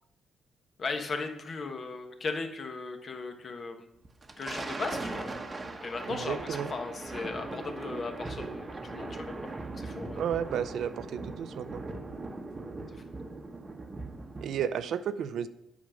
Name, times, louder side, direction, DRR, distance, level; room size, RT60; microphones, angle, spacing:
voice 1, 0.8-3.9 4.4-5.3 5.8-9.4 9.8-10.2, left 4 dB, 45° left, 5 dB, 1.2 m, -37 dB
Thunder, 4.0-14.8, right 2 dB, 25° right, 1.0 m, -39 dB
voice 2, 6.1-6.7 10.2-11.8 14.4-15.5, right 8 dB, 70° right, 12 dB, 0.5 m, -32 dB
8.5 x 5.1 x 6.2 m, 0.83 s
cardioid pair, 90°, 0 cm